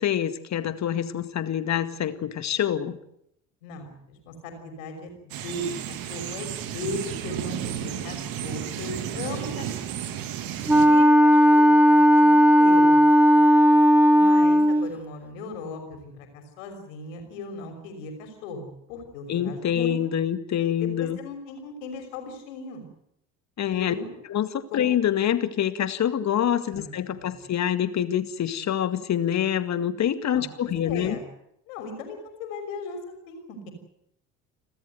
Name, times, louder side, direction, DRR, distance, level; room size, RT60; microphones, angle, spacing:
voice 1, 0.0-3.0 19.3-21.2 23.6-23.9 24.3-31.2, left 10 dB, 45° left, 11 dB, 2.0 m, -26 dB
voice 2, 3.6-9.9 10.8-13.0 14.1-20.0 20.8-22.8 23.7-24.2 26.7-27.4 30.2-31.2 31.7-33.7, left 2 dB, 70° left, 5 dB, 5.8 m, -38 dB
sound 1, 5.3-10.9, right 10 dB, 55° right, 2.3 m, -33 dB
Wind instrument woodwind instrument, 10.7-14.9, equal, 5° right, 1.4 m, -16 dB
30.0 x 13.5 x 9.4 m, 0.77 s
figure-of-eight pair, 60°, 40 cm